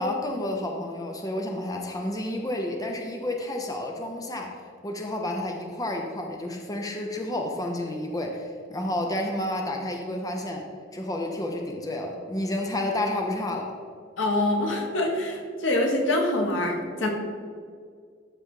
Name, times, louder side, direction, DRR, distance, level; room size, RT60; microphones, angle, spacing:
voice 1, 0.0-4.5 4.8-10.6 10.9-13.7, left 1 dB, 20° left, 2 dB, 0.7 m, -30 dB
voice 2, 14.2-17.1, left 1 dB, 85° left, 1 dB, 1.3 m, -25 dB
12.0 x 4.1 x 3.8 m, 2.1 s
head